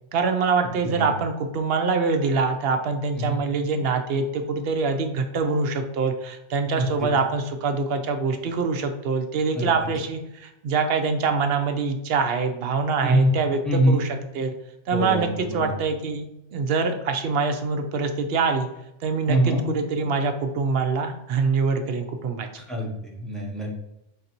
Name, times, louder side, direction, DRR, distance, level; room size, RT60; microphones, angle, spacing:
voice 1, 0.1-14.5 14.9-16.3 16.5-18.7 19.0-22.5, right 4 dB, 70° right, 6 dB, 0.8 m, -24 dB
voice 2, 6.8-7.1 9.5-9.7 13.0-13.3 13.7-14.0 14.9-15.7 19.3-19.6 22.6-23.8, right 1 dB, ahead, -2 dB, 0.7 m, -24 dB
3.9 x 2.6 x 4.3 m, 0.88 s
omnidirectional pair, 1.1 m